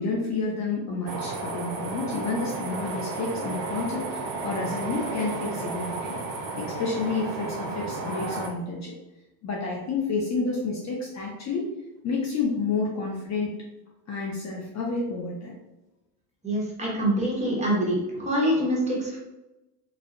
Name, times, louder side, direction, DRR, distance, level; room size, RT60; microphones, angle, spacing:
voice 1, 0.0-6.2 6.6-8.9 9.4-11.7 12.0-13.5 14.1-15.5, left 4 dB, 40° left, -2 dB, 0.5 m, -30 dB
sound 1, 1.1-8.5, right 3 dB, 70° right, 0.6 m, -33 dB
voice 2, 16.4-19.2, equal, 15° right, -4 dB, 0.8 m, -25 dB
2.6 x 2.0 x 2.5 m, 0.98 s
supercardioid pair, 95°, 47 cm